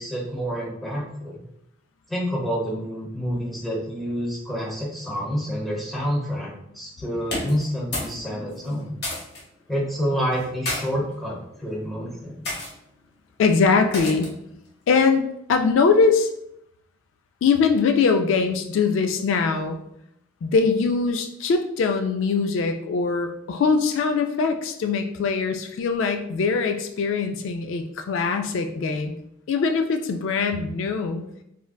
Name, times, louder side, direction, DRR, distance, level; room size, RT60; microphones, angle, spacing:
voice 1, 0.0-1.4 2.1-9.0 9.7-12.5, equal, ahead, -6 dB, 0.8 m, -28 dB
sound 1, 7.2-8.2 8.5-9.4 10.3-10.8 11.6-11.9 12.4-12.7 13.9-14.4, left 1 dB, 55° left, 0.9 m, -31 dB
voice 2, 8.1-8.8 13.4-14.3 14.9-16.3 17.4-19.8 20.4-29.1 29.5-31.2, left 5 dB, 85° left, 6 dB, 0.3 m, -22 dB
3.8 x 2.1 x 2.2 m, 0.75 s
head